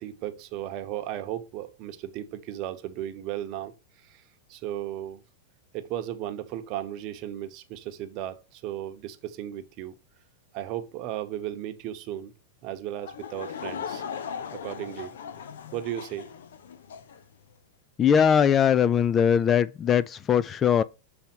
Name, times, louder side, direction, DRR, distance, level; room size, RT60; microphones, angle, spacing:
voice 1, 0.0-5.2 5.7-9.9 10.5-12.3 12.6-14.0 14.5-15.1 15.7-16.3, right 12 dB, 45° right, 0.9 m, -35 dB
Laughter / Crowd, 13.0-17.2, left 7 dB, 85° left, 0.7 m, -38 dB
voice 2, 18.0-20.8, left 8 dB, 25° left, 0.3 m, -21 dB
7.0 x 3.4 x 4.4 m
supercardioid pair, 135°, 0 cm